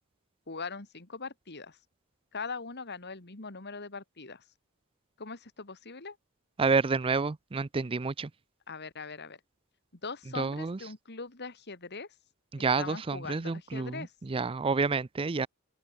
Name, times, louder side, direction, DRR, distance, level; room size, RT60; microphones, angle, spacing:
voice 1, 0.5-1.8 2.3-4.4 5.2-6.2 8.7-9.4 10.0-12.1 12.6-14.1, left 4 dB, 50° left, 2.3 m, -41 dB
voice 2, 6.6-8.3 10.4-10.8 12.6-13.9 14.3-15.5, right 4 dB, 25° right, 0.5 m, -29 dB
open air
head